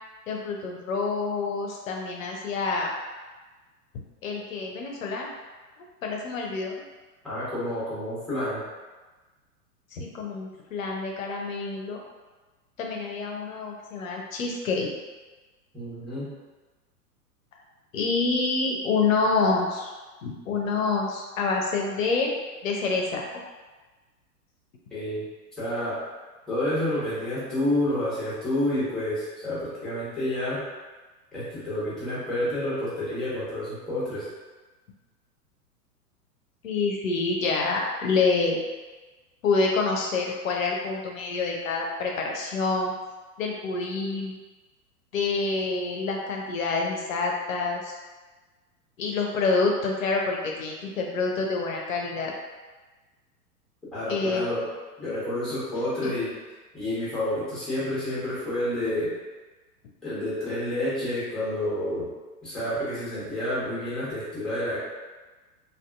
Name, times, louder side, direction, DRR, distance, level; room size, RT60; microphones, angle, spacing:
voice 1, 0.3-2.9 4.2-5.3 5.8-6.7 9.9-12.0 12.8-14.9 17.9-19.9 20.2-22.3 22.6-23.2 36.6-38.6 39.4-42.9 43.4-44.3 45.1-48.0 49.0-52.3 54.1-54.5 56.0-56.1, left 4 dB, 55° left, 0 dB, 0.6 m, -27 dB
voice 2, 7.2-8.6 15.7-16.3 24.9-25.2 25.6-26.0 26.5-30.6 31.3-34.3 53.9-54.6 55.0-56.3 56.7-59.1 60.0-62.1 62.4-64.8, left 1 dB, ahead, -10 dB, 0.8 m, -29 dB
2.6 x 2.4 x 2.2 m, 1.2 s
figure-of-eight pair, 105°, 47 cm